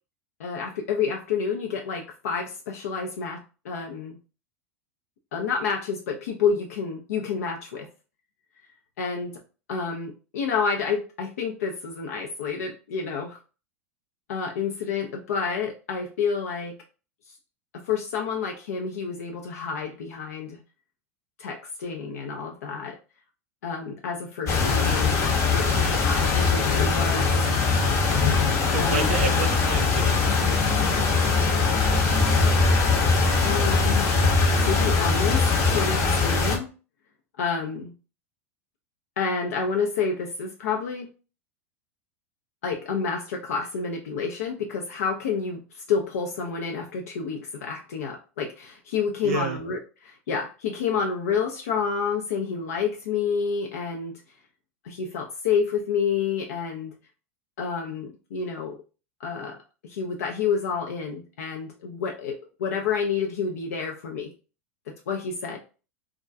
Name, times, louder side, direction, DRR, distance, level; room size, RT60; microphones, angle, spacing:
voice 1, 0.4-4.2 5.3-7.9 9.0-9.4 9.7-13.4 14.3-16.7 17.7-20.6 21.4-23.0 23.6-25.2 25.5-27.3 28.8-29.2 30.4-30.6 33.4-34.1 34.6-36.7 37.4-37.9 39.2-41.1 42.6-54.2 54.8-56.9 57.6-58.8 59.2-59.6 59.8-64.3 64.9-65.6, left 6 dB, 75° left, 2 dB, 0.4 m, -29 dB
sound 1, 24.5-36.6, left 4 dB, 40° left, 0.7 m, -21 dB
voice 2, 28.7-31.2 31.9-32.4 49.2-49.6, right 4 dB, 75° right, 5 dB, 0.5 m, -32 dB
2.3 x 2.1 x 2.5 m, 0.34 s
hypercardioid pair, 95°, 8 cm